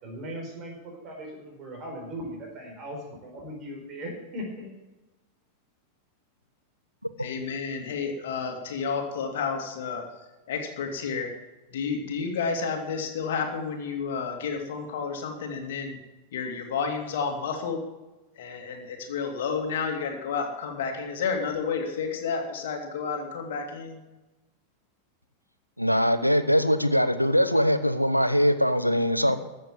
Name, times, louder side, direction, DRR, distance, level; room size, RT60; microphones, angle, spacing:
voice 1, 0.0-4.7, equal, 35° right, 0 dB, 4.6 m, -38 dB
voice 2, 7.2-10.1 10.5-11.3 11.7-16.0 16.3-17.8 18.4-24.0, left 5 dB, 55° left, 3 dB, 2.5 m, -31 dB
voice 3, 25.8-29.4, equal, 90° left, 11 dB, 0.9 m, -22 dB
13.5 x 7.7 x 7.5 m, 1.1 s
figure-of-eight pair, 90°, 0 cm